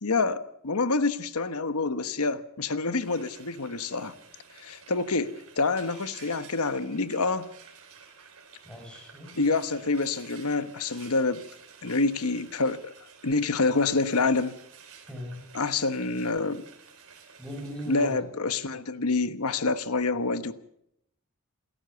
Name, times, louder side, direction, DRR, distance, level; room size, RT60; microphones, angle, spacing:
voice 1, 0.0-4.1 4.6-7.5 9.3-11.4 11.8-12.8 13.2-14.6 15.5-16.6 17.9-20.5, left 3 dB, 80° left, 1.2 m, -27 dB
Frying (food), 3.0-18.1, right 6 dB, 70° right, 4.3 m, -52 dB
voice 2, 8.6-9.3 15.0-15.4 17.4-18.2, equal, 5° left, 6.5 m, -38 dB
27.5 x 13.5 x 7.0 m
head